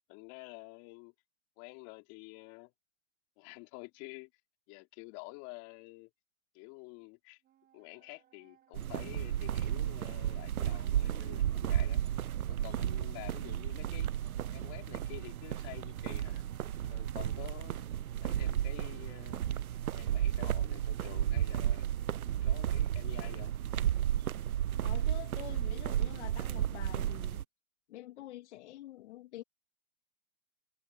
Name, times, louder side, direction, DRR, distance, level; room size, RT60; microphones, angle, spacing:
voice 1, 0.1-1.1 1.6-2.7 3.4-4.3 4.7-6.1 6.5-7.4 7.7-12.0 12.5-14.1 14.5-16.4 16.9-17.9 18.2-19.4 19.9-21.9 22.4-23.5, left 28 dB, 35° left, 3.4 m, -49 dB
Wind instrument woodwind instrument, 7.4-22.9, right 10 dB, 20° right, 3.8 m, -68 dB
sound 1, 8.7-27.4, right 11 dB, 90° right, 0.7 m, -33 dB
voice 2, 24.8-27.4 27.9-29.4, left 15 dB, 55° left, 2.5 m, -47 dB
hypercardioid pair, 135°, 42 cm